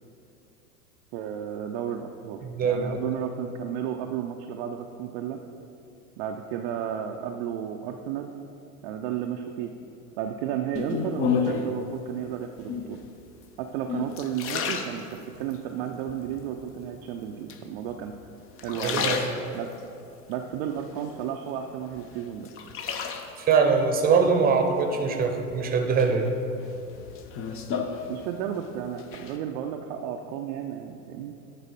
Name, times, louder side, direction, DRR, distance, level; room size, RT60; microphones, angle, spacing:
voice 1, 1.1-5.4 6.2-8.3 8.8-9.7 10.2-13.0 13.6-18.1 18.6-19.2 19.5-19.7 20.3-22.5 28.1-31.3, right 9 dB, 45° right, 3 dB, 0.5 m, -33 dB
voice 2, 2.4-3.0 18.8-19.2 23.4-26.3, right 5 dB, 20° right, 4 dB, 0.8 m, -23 dB
sound 1, 10.7-11.8 12.6-13.1 13.6-15.6 16.1-16.7 17.5-18.2 18.5-19.8 20.3-21.5 21.9-23.6 24.9-25.5 26.0-28.6 28.8-29.4, left 6 dB, 30° left, 0.7 m, -32 dB
10.0 x 4.0 x 5.1 m, 2.7 s
hypercardioid pair, 95°, 47 cm